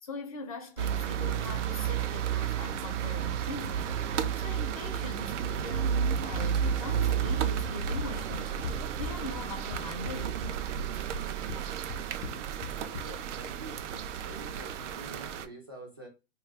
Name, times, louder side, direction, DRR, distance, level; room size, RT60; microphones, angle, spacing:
voice 1, 0.0-3.9 4.4-10.4, left 2 dB, 30° left, 0.5 m, -41 dB
sound 1, 0.8-15.5, right 8 dB, 85° right, 0.5 m, -32 dB
Run, 6.3-13.3, left 6 dB, 80° left, 0.6 m, -41 dB
voice 2, 12.8-13.8 14.2-16.1, right 1 dB, 20° right, 0.3 m, -47 dB
2.7 x 2.3 x 3.2 m
hypercardioid pair, 175°, 35 cm